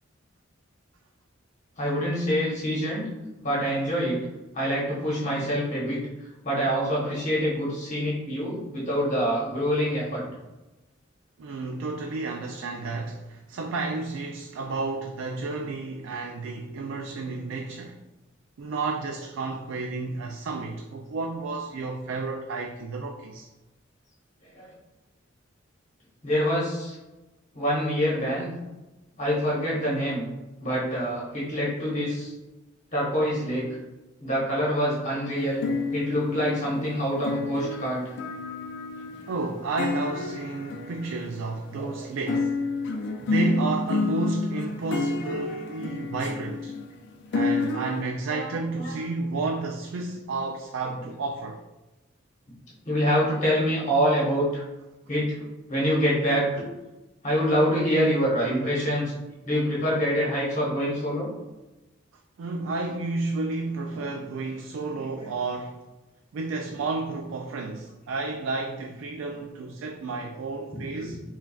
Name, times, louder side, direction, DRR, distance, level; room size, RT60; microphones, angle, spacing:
voice 1, 1.8-3.1 3.4-4.2 4.5-6.0 6.4-10.2 24.4-24.7 26.2-27.0 27.5-28.5 29.2-30.2 30.6-32.3 32.9-33.7 34.2-38.0 41.7-41.9 42.3-42.4 48.3-48.5 48.7-48.9 52.8-54.6 55.1-55.4 55.7-56.6 57.2-59.1 59.4-61.3 63.9-64.1 64.9-65.3 70.7-71.1, equal, 40° left, 1.1 m, -26 dB
voice 2, 11.4-18.0 18.6-23.5 39.3-42.6 43.2-46.7 47.3-51.6 62.4-65.8 66.3-71.2, right 3 dB, 85° right, 0.3 m, -31 dB
sound 1, 35.4-41.8 42.3-48.0, left 3 dB, 60° left, 0.4 m, -30 dB
5.7 x 2.3 x 2.3 m
head